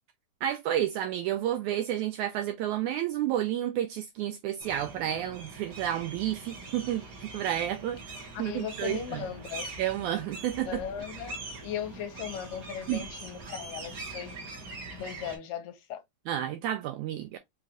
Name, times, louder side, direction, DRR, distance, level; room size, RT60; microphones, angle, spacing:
voice 1, 0.4-7.0 7.3-9.3 9.8-10.8 12.9-13.1 16.3-17.4, right 11 dB, 85° right, 1.8 m, -31 dB
sound 1, 4.6-15.4, right 3 dB, 70° right, 0.9 m, -43 dB
voice 2, 8.3-9.7 10.6-14.5 14.9-16.0, left 9 dB, 80° left, 2.5 m, -38 dB
5.6 x 2.5 x 2.9 m
omnidirectional pair, 3.9 m